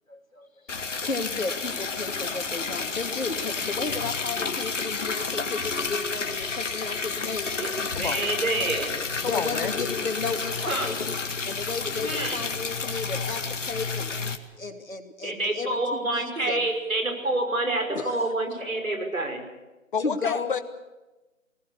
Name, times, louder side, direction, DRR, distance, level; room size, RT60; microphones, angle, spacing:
voice 1, 0.1-7.9 9.2-14.2 14.6-16.7 17.9-18.3 20.0-20.6, left 4 dB, 85° left, 4 dB, 3.1 m, -34 dB
Liquid, 0.7-14.4, left 4 dB, 65° left, 2.0 m, -30 dB
voice 2, 8.0-8.9 10.7-10.9 12.0-12.4 15.2-19.5, right 2 dB, 85° right, 4 dB, 5.6 m, -27 dB
voice 3, 9.2-9.7 19.9-20.6, left 6 dB, 40° left, 9 dB, 1.4 m, -29 dB
24.0 x 19.0 x 7.0 m, 1.1 s
figure-of-eight pair, 160°, 39 cm